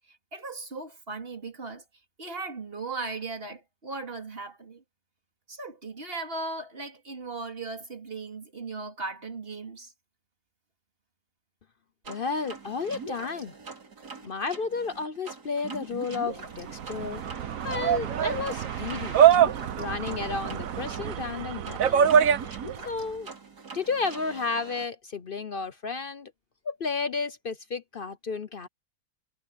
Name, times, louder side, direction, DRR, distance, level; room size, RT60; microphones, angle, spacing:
voice 1, 0.1-1.8 2.2-4.8 5.5-9.9, right 3 dB, 35° right, 3.1 m, -37 dB
sound 1, 12.0-24.9, right 4 dB, 80° right, 4.2 m, -43 dB
voice 2, 12.1-13.5 14.2-17.2 17.6-19.2 19.8-22.1 22.9-23.3 23.7-26.3 26.6-28.7, left 4 dB, 50° left, 0.7 m, -32 dB
sound 2, 16.5-22.9, right 9 dB, 60° right, 1.3 m, -24 dB
omnidirectional pair, 1.7 m